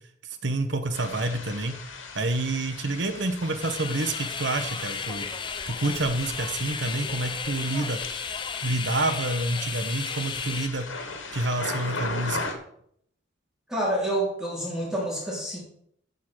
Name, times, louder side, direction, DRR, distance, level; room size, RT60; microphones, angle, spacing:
voice 1, 0.2-1.8 2.1-5.3 5.7-8.0 8.6-10.8 11.3-12.5, right 2 dB, 65° right, 8 dB, 1.2 m, -28 dB
sound 1, 0.9-12.5, left 3 dB, 80° left, 2.3 m, -38 dB
sound 2, 3.6-10.7, left 6 dB, 25° left, 0.6 m, -34 dB
voice 2, 13.7-15.6, right 1 dB, 5° right, -5 dB, 3.6 m, -28 dB
14.5 x 5.6 x 6.3 m, 0.69 s
head